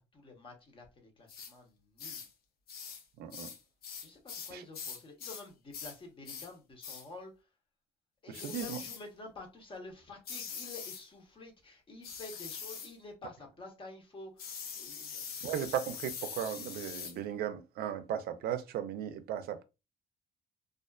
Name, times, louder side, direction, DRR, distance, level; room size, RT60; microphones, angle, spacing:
voice 1, 0.0-2.2 4.0-7.5 8.2-15.5, left 3 dB, 30° left, 0.9 m, -49 dB
sound 1, 1.3-1.5 2.0-2.3 2.7-3.0 3.3-5.5 5.7-6.0 6.2-6.5 6.8-7.1 8.3-9.0 10.2-11.0 12.0-12.9 14.4-17.2, left 6 dB, 65° left, 0.6 m, -43 dB
voice 2, 3.2-3.5 4.5-4.6 8.4-8.8 15.4-19.6, right 9 dB, 65° right, 0.5 m, -36 dB
2.4 x 2.4 x 2.3 m
cardioid pair, 110°, 17 cm